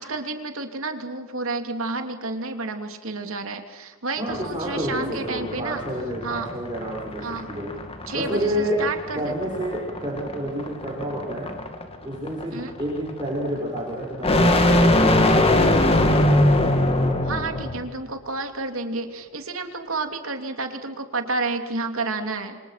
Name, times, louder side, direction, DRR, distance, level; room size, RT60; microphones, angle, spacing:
voice 1, 0.0-5.8 6.2-6.5 7.2-7.5 8.1-9.3 12.5-12.7 17.2-22.6, right 3 dB, 70° right, 5 dB, 3.0 m, -30 dB
voice 2, 4.2-7.2 7.5-7.7 8.1-8.8 9.1-11.5 12.0-16.2, equal, 20° right, -3 dB, 6.1 m, -29 dB
sound 1, 4.3-17.8, left 1 dB, 30° left, 2.4 m, -22 dB
29.0 x 25.5 x 5.9 m, 1.3 s
head